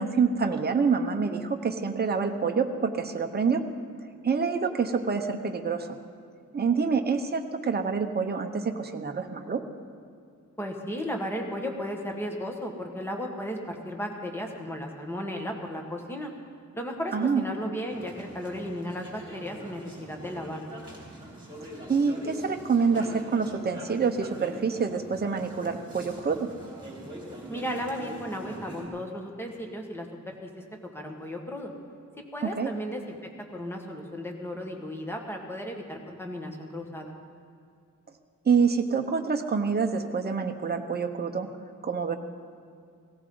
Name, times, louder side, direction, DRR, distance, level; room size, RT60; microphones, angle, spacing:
voice 1, 0.0-3.6 4.2-6.0 6.5-9.6 17.1-17.4 21.9-26.5 32.4-32.7 38.4-41.5 41.8-42.1, right 5 dB, 30° right, 4 dB, 0.9 m, -26 dB
voice 2, 10.6-16.3 16.7-20.7 27.5-30.7 30.9-31.7 32.3-33.2 33.5-37.1, equal, 5° left, 2 dB, 1.7 m, -35 dB
sound 1, 17.9-28.9, right 1 dB, 15° right, 3.5 m, -43 dB
17.5 x 17.0 x 4.0 m, 2.3 s
wide cardioid pair, 125°, 32 cm